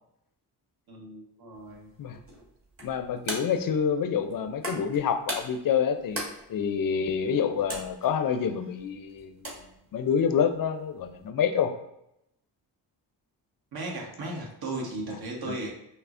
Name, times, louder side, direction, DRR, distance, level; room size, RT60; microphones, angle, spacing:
voice 1, 0.9-1.9 13.7-15.7, right 2 dB, 55° right, 0 dB, 1.2 m, -36 dB
sound 1, 1.5-11.3, right 1 dB, 30° right, 1.4 m, -41 dB
voice 2, 2.8-6.2 6.5-9.6 9.9-11.7 15.5-15.6, left 7 dB, 50° left, 8 dB, 0.5 m, -27 dB
5.4 x 2.1 x 2.5 m, 0.82 s
cardioid pair, 65°, 44 cm